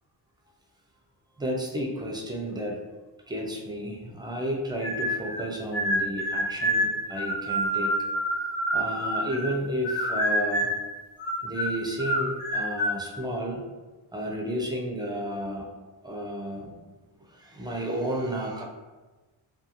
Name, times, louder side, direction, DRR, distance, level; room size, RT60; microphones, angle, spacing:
voice 1, 1.4-2.8 3.3-8.0 8.7-10.7 11.4-13.6 14.1-15.7 16.0-16.7 17.2-18.6, equal, 10° right, 0 dB, 0.4 m, -32 dB
sound 1, 4.8-5.4 5.7-9.6 9.8-10.8 11.2-13.0, equal, 90° left, 1.2 m, -27 dB
2.4 x 2.3 x 2.8 m, 1.2 s
cardioid pair, 85°, 47 cm